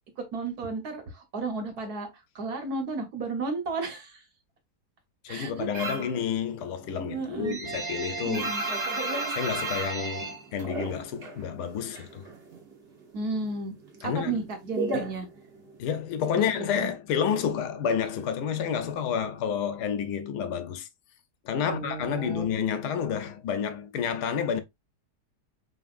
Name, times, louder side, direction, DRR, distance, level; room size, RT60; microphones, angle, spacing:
voice 1, 0.2-4.2 5.3-6.2 7.1-7.6 8.2-8.6 13.1-13.7 14.0-15.3 16.7-16.9 21.6-22.5, right 3 dB, 65° right, 1.7 m, -33 dB
voice 2, 5.2-8.5 9.3-12.3 14.0-14.4 14.9-15.1 15.8-20.9 21.4-24.6, left 7 dB, 80° left, 1.3 m, -30 dB
sound 1, 5.7-6.2 6.5-11.4 11.7-12.7 13.0-15.8, right 2 dB, 40° right, 1.4 m, -33 dB
5.2 x 3.0 x 2.5 m
omnidirectional pair, 1.8 m